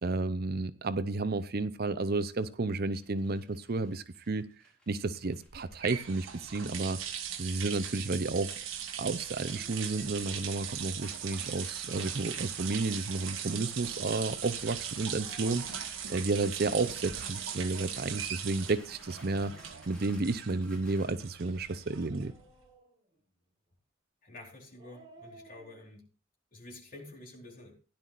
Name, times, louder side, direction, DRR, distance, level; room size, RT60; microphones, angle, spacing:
voice 1, 0.0-4.5 4.9-7.0 7.4-8.6 9.0-19.5 19.9-22.3, right 3 dB, 50° right, 0.6 m, -32 dB
sound 1, 3.0-21.0, equal, 5° left, 4.5 m, -57 dB
sound 2, 5.5-22.5, right 8 dB, 80° right, 1.5 m, -39 dB
Dog, 6.5-7.1 9.2-10.6 12.7-13.4 15.0-16.4 17.4-20.5 21.8-23.2 24.5-25.9, right 2 dB, 25° right, 3.8 m, -59 dB
voice 2, 24.2-26.1 26.5-27.7, left 2 dB, 45° left, 4.0 m, -49 dB
16.5 x 11.0 x 2.5 m
head